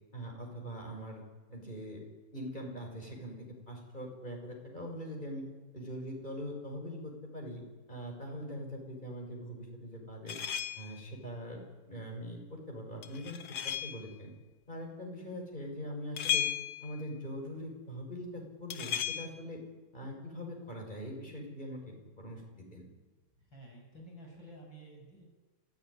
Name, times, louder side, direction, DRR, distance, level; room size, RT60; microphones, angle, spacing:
voice 1, 0.1-1.2 1.5-2.0 2.3-3.4 3.7-5.4 5.7-7.6 7.9-10.4 10.7-11.6 11.9-13.4 13.6-14.3 14.7-16.5 16.8-19.6 19.9-22.9, equal, 20° left, 0 dB, 6.4 m, -42 dB
sound 1, 10.3-11.0 13.0-14.1 16.2-17.0 18.7-19.3, left 9 dB, 80° left, 2.1 m, -35 dB
voice 2, 23.5-25.2, right 1 dB, 60° left, 1 dB, 7.1 m, -51 dB
27.0 x 16.0 x 10.0 m, 1.2 s
omnidirectional pair, 2.3 m